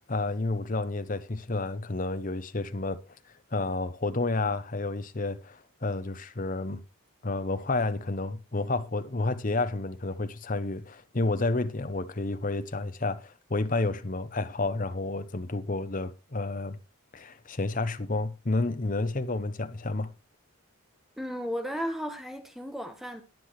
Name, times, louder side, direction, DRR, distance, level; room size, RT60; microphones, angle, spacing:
voice 1, 0.1-3.0 3.5-6.8 7.2-16.8 17.1-20.1, left 2 dB, 35° left, 0.9 m, -30 dB
voice 2, 21.2-23.2, equal, ahead, 1.2 m, -34 dB
20.0 x 7.7 x 3.2 m
head